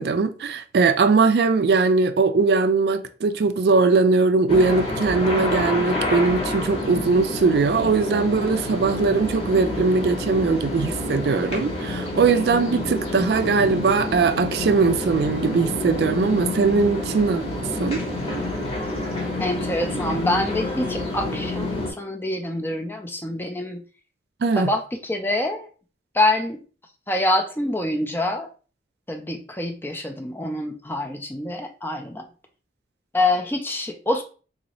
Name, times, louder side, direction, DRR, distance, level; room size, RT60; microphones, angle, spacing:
voice 1, 0.0-17.4 17.8-18.0 24.4-24.7, right 4 dB, 60° right, 0.3 m, -20 dB
sound 1, 4.5-21.9, left 1 dB, 35° left, 0.9 m, -28 dB
voice 2, 19.4-23.8 24.6-25.7 26.1-26.6 27.1-28.5 29.1-32.2 33.1-34.2, left 1 dB, 10° left, 0.4 m, -25 dB
3.9 x 2.6 x 3.0 m
head